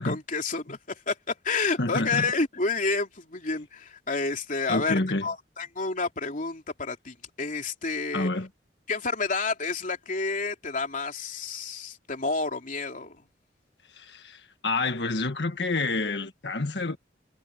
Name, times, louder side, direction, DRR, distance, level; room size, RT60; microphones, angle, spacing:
voice 1, 0.0-8.3 8.9-13.2, left 4 dB, 50° left, 3.2 m, -30 dB
voice 2, 1.8-2.3 4.7-5.3 8.1-8.5 13.9-17.0, left 2 dB, 75° left, 1.6 m, -28 dB
head